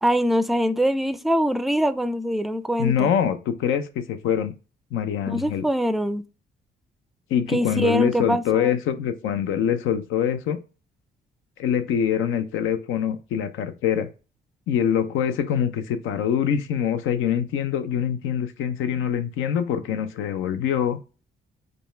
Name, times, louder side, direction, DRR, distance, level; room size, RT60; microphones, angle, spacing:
voice 1, 0.0-3.1 5.3-6.2 7.5-8.7, equal, ahead, 0.4 m, -23 dB
voice 2, 2.8-4.5 4.9-5.7 7.3-10.6 11.6-14.1 14.7-21.0, left 9 dB, 85° left, 0.6 m, -24 dB
5.3 x 2.3 x 4.3 m
cardioid pair, 90°, 20 cm